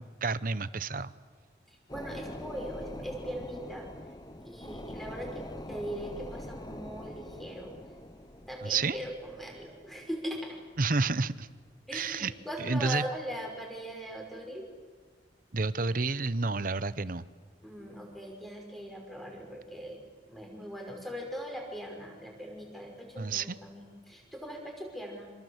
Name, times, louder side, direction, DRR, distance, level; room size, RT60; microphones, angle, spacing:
voice 1, 0.2-1.1 8.6-9.0 10.8-11.5 11.9-12.3 12.6-13.0 15.5-17.2 23.2-23.6, right 4 dB, 50° right, 16 dB, 0.9 m, -30 dB
voice 2, 1.7-3.9 4.4-7.8 8.4-10.6 11.9-14.6 17.6-20.0 20.3-25.3, equal, ahead, 1 dB, 5.8 m, -40 dB
sound 1, 1.9-11.9 12.3-12.4, left 1 dB, 20° left, 1.2 m, -44 dB
27.5 x 25.5 x 8.2 m, 1.5 s
head